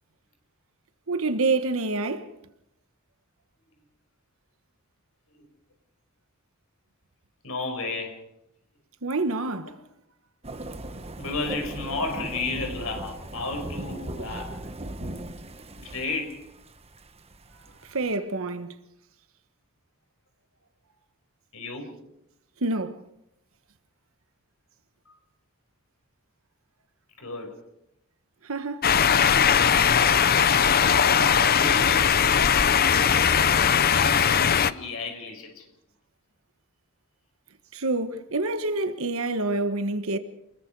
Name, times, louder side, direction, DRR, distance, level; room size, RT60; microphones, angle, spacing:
voice 1, 1.1-2.3 9.0-9.8 17.8-18.7 22.6-23.0 28.4-28.9 37.7-40.2, right 3 dB, 65° right, 1.3 m, -27 dB
voice 2, 7.4-8.2 10.5-10.7 11.2-14.6 15.8-16.5 21.5-22.1 25.1-25.2 27.2-27.6 31.5-32.9 33.9-35.7, left 3 dB, 70° left, 5.4 m, -33 dB
sound 1, 10.4-18.1, right 1 dB, 30° right, 1.4 m, -38 dB
sound 2, 28.8-34.7, left 7 dB, 45° left, 0.7 m, -20 dB
28.5 x 21.0 x 4.8 m
head